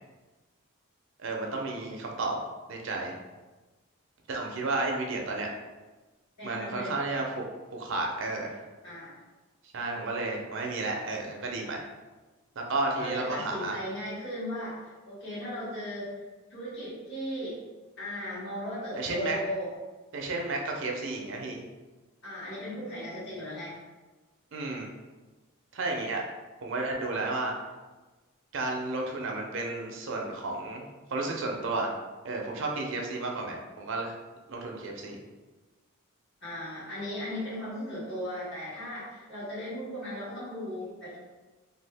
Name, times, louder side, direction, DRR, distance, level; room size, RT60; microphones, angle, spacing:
voice 1, 1.2-2.4 2.7-3.1 4.3-5.5 6.4-7.4 7.7-8.6 9.7-11.8 12.7-13.8 18.9-19.4 20.1-21.6 24.5-24.9 25.7-26.2 26.6-27.5 28.5-30.8 31.1-31.9 32.2-34.2 34.5-35.2, right 2 dB, 60° right, 1 dB, 0.5 m, -32 dB
voice 2, 6.4-6.9 8.8-9.2 13.0-16.1 16.5-17.6 18.0-19.7 22.2-23.8 36.4-41.2, equal, 55° left, -9 dB, 1.3 m, -37 dB
2.6 x 2.3 x 3.3 m, 1.2 s
head